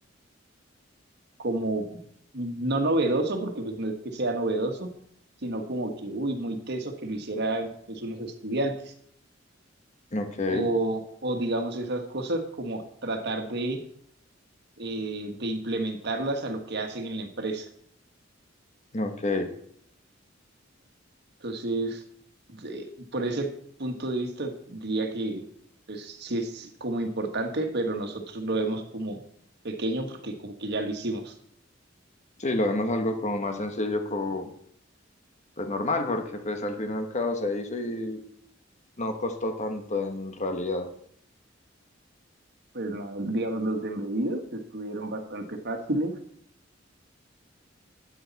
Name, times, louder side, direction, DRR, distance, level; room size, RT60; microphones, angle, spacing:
voice 1, 1.4-2.0 2.3-4.9 5.4-8.9 10.5-13.8 14.8-17.7 21.4-22.0 22.5-23.5 23.8-25.4 25.9-29.2 29.6-31.3 42.7-46.1, right 2 dB, 60° right, 5 dB, 1.6 m, -30 dB
voice 2, 10.1-10.7 18.9-19.5 32.4-34.5 35.6-38.2 39.0-40.9, left 2 dB, 40° left, 6 dB, 1.3 m, -29 dB
12.5 x 8.7 x 4.1 m, 0.66 s
head